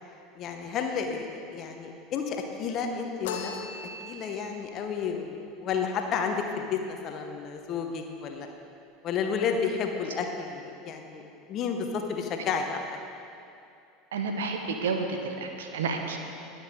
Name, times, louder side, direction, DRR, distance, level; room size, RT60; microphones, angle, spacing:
voice 1, 0.4-3.5 4.0-8.5 9.0-12.8, left 6 dB, 40° left, 4 dB, 1.1 m, -31 dB
sound 1, 3.2-4.5, left 4 dB, 60° left, 1.1 m, -37 dB
voice 2, 14.1-16.2, right 4 dB, 70° right, 4 dB, 1.1 m, -30 dB
19.5 x 7.3 x 3.8 m, 2.6 s
figure-of-eight pair, 75°, 0 cm